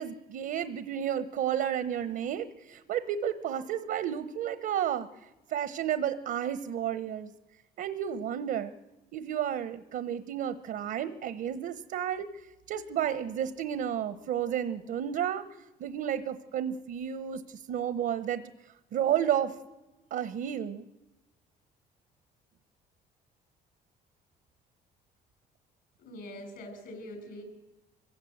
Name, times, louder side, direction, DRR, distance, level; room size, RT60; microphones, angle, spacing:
voice 1, 0.0-5.1 5.5-7.3 7.8-8.7 9.1-12.3 12.7-15.4 15.8-18.4 18.9-19.6 20.1-20.9, right 9 dB, 70° right, 13 dB, 0.9 m, -31 dB
voice 2, 26.0-27.4, left 1 dB, 70° left, 5 dB, 6.6 m, -43 dB
24.0 x 16.0 x 7.9 m, 1.1 s
cardioid pair, 110°, 17 cm